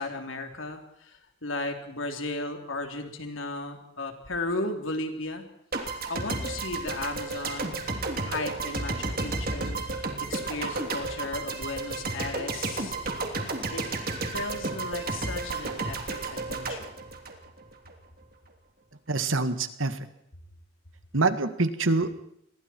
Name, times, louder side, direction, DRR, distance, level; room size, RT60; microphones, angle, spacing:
voice 1, 0.0-5.5 5.9-7.8 8.2-9.8 10.2-13.0 13.7-13.9 14.3-16.9, left 2 dB, 85° left, 4 dB, 3.5 m, -35 dB
sound 1, 5.7-17.9, right 3 dB, 50° right, 3.1 m, -32 dB
voice 2, 19.1-20.0 21.1-22.2, right 3 dB, 90° right, 10 dB, 1.8 m, -25 dB
28.5 x 22.0 x 4.6 m, 0.73 s
head